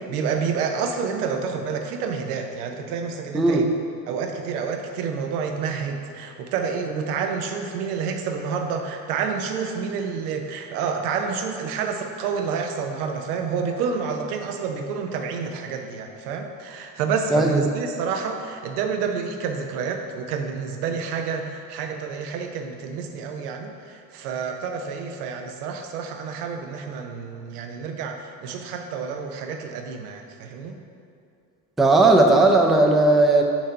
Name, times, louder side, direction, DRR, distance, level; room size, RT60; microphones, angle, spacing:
voice 1, 0.1-3.7 4.1-30.8, right 6 dB, 80° right, 4 dB, 0.8 m, -29 dB
voice 2, 3.3-3.7 17.3-17.6 31.8-33.4, right 2 dB, ahead, 2 dB, 0.4 m, -16 dB
6.6 x 3.0 x 5.6 m, 2.5 s
hypercardioid pair, 85°, 45 cm